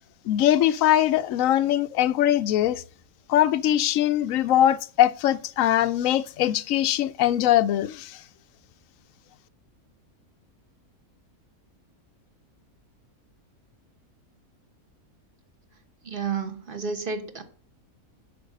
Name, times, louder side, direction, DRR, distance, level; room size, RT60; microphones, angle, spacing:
voice 1, 0.3-2.8 3.3-8.2, left 12 dB, 70° left, 0.9 m, -22 dB
voice 2, 16.0-17.4, right 5 dB, 40° right, 1.4 m, -31 dB
10.5 x 5.5 x 5.2 m
omnidirectional pair, 1.6 m